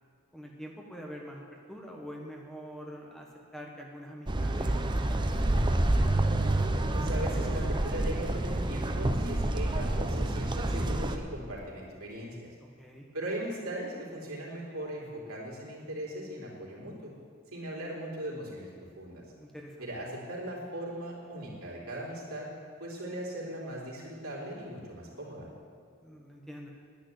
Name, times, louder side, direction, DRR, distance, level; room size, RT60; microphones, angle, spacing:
voice 1, 0.3-5.5 12.8-13.1 19.4-19.8 26.0-26.7, equal, ahead, 0 dB, 1.2 m, -45 dB
sound 1, 4.3-11.2, right 1 dB, 20° right, 0.6 m, -28 dB
voice 2, 6.9-12.5 13.1-17.1 17.5-18.7 19.0-19.2 19.8-22.5 22.8-25.5, right 1 dB, 80° right, -4 dB, 3.6 m, -39 dB
10.5 x 10.5 x 7.9 m, 2.2 s
head